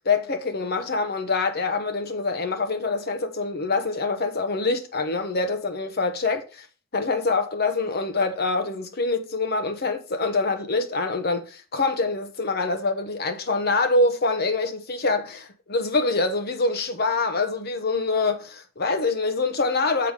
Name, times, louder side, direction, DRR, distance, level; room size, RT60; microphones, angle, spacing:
voice 1, 0.0-6.7 6.9-20.1, left 3 dB, 50° left, 1.0 m, -25 dB
7.1 x 4.9 x 4.8 m
head